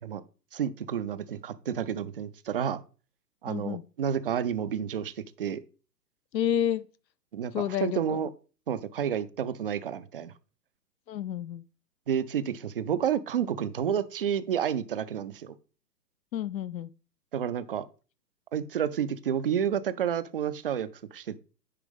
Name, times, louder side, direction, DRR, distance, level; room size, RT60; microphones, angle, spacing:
voice 1, 0.5-2.8 3.4-5.6 7.3-8.3 8.7-10.3 12.1-15.6 17.3-17.9 18.5-21.4, right 8 dB, 40° right, 0.4 m, -30 dB
voice 2, 3.5-3.8 6.3-6.9 7.5-8.2 11.1-11.6 16.3-16.9, left 10 dB, 85° left, 0.6 m, -30 dB
10.0 x 4.8 x 3.5 m
figure-of-eight pair, 125°, 49 cm